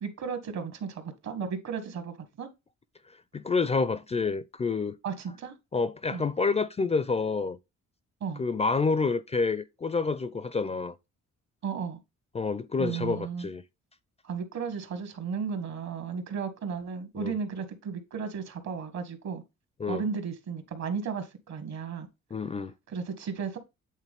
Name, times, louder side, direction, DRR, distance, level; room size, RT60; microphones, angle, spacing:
voice 1, 0.0-2.5 5.0-5.6 6.1-6.3 8.2-8.4 11.6-12.0 12.8-13.5 14.2-19.4 19.9-22.1 22.9-23.6, right 6 dB, 65° right, 1.5 m, -34 dB
voice 2, 3.3-5.0 5.7-7.6 8.4-11.0 12.3-13.6 17.2-17.3 19.8-20.0 22.3-22.7, left 4 dB, 20° left, 0.4 m, -28 dB
8.3 x 3.7 x 3.5 m
cardioid pair, 90°, 30 cm